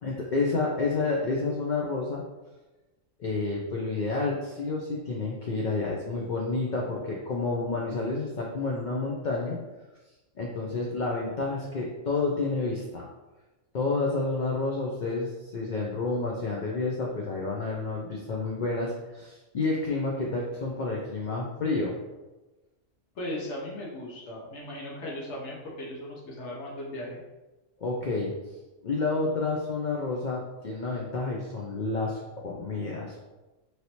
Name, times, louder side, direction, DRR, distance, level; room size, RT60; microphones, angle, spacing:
voice 1, 0.0-2.2 3.2-9.6 10.4-13.1 13.7-22.0 27.8-28.3 28.8-33.2, left 3 dB, 90° left, -2 dB, 0.4 m, -29 dB
voice 2, 23.1-27.2, left 1 dB, 65° left, -3 dB, 1.0 m, -37 dB
3.2 x 2.6 x 2.8 m, 1.1 s
omnidirectional pair, 1.4 m